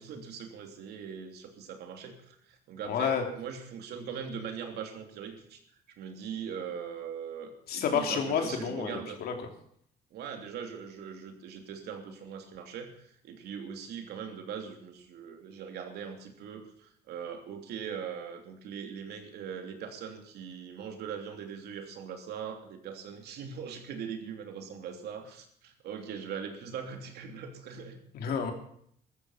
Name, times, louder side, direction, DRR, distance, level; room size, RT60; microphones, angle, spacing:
voice 1, 0.0-5.6 5.9-9.2 10.1-28.0, right 7 dB, 70° right, 4 dB, 3.2 m, -41 dB
voice 2, 2.8-3.2 7.7-9.5 28.1-28.5, left 7 dB, 65° left, 4 dB, 3.1 m, -30 dB
14.5 x 13.5 x 5.8 m, 0.66 s
cardioid pair, 110°, 17 cm